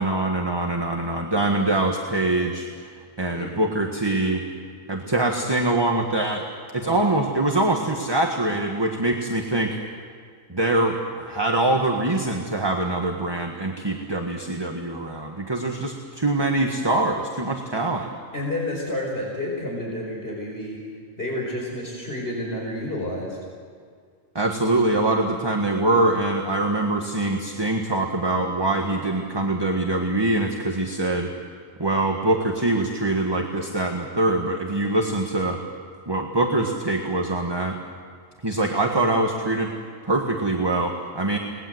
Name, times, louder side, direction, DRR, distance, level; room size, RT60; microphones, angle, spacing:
voice 1, 0.0-2.7 3.2-4.4 4.9-6.5 6.7-9.8 10.5-18.1 24.3-31.3 31.8-35.6 36.1-37.8 38.4-39.7 40.0-41.4, right 2 dB, 20° right, 2 dB, 1.6 m, -23 dB
voice 2, 6.8-7.1 18.3-20.8 21.2-23.4, left 1 dB, 45° left, -3 dB, 5.4 m, -30 dB
29.5 x 20.5 x 7.9 m, 2.1 s
omnidirectional pair, 1.4 m